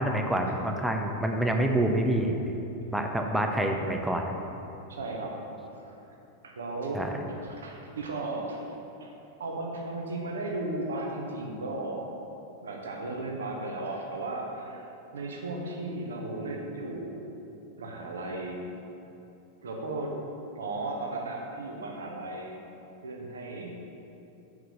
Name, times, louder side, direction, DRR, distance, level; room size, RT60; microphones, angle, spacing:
voice 1, 0.0-2.4 2.9-4.2 6.9-7.1, right 1 dB, 5° right, 3 dB, 0.6 m, -27 dB
voice 2, 4.9-5.4 5.7-5.9 6.4-7.0 7.4-8.6 9.0-9.1 9.4-12.1 12.6-17.1 17.8-18.7 19.6-20.1 20.6-22.6 23.0-23.7, right 2 dB, 65° right, 0 dB, 1.0 m, -35 dB
6.1 x 4.9 x 5.1 m, 2.9 s
figure-of-eight pair, 90°, 0 cm